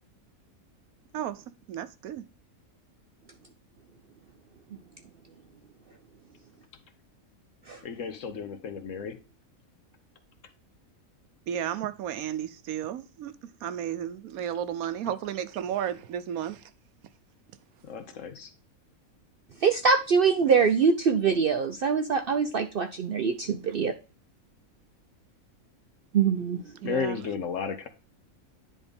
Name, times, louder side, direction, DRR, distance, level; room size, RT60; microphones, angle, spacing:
voice 1, 1.1-2.3 11.5-13.4 13.6-16.7 26.8-27.2, right 10 dB, 80° right, 1.1 m, -33 dB
voice 2, 7.8-9.2 17.8-18.5 26.8-27.9, left 6 dB, 65° left, 1.3 m, -33 dB
voice 3, 19.6-23.9 26.1-26.6, right 5 dB, 60° right, 0.6 m, -24 dB
10.0 x 3.7 x 3.4 m
omnidirectional pair, 1.5 m